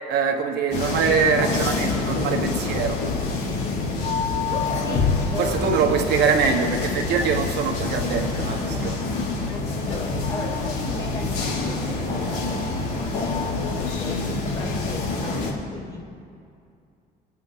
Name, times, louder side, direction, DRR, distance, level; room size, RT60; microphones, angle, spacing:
voice 1, 0.1-3.0 5.4-9.0, right 5 dB, 75° right, 4 dB, 1.5 m, -23 dB
sound 1, 0.7-15.5, left 3 dB, 70° left, 3.8 m, -27 dB
sound 2, 4.4-5.5 5.8-5.9 6.8-7.5 9.3-9.6 9.9-10.2 10.5-10.6 11.4-11.5 13.3-15.4, left 6 dB, 40° left, 1.8 m, -31 dB
voice 2, 4.7-6.2 9.5-13.4 13.7-16.0, left 2 dB, 25° left, -2 dB, 2.5 m, -36 dB
26.0 x 9.0 x 3.5 m, 2.4 s
cardioid pair, 110°, 17 cm